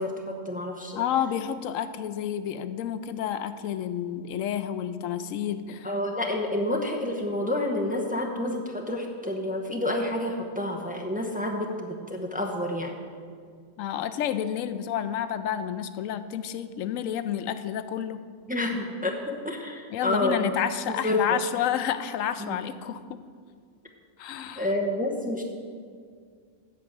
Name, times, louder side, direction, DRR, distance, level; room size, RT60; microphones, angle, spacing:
voice 1, 0.0-1.0 5.8-12.9 18.5-19.2 19.4-20.5 20.9-21.4 22.4-22.6 24.6-25.4, left 1 dB, 10° right, 0 dB, 0.8 m, -29 dB
voice 2, 0.9-5.9 13.8-18.2 19.9-23.2 24.2-24.7, left 9 dB, 85° left, 12 dB, 1.0 m, -30 dB
8.3 x 7.1 x 7.9 m, 2.1 s
omnidirectional pair, 1.3 m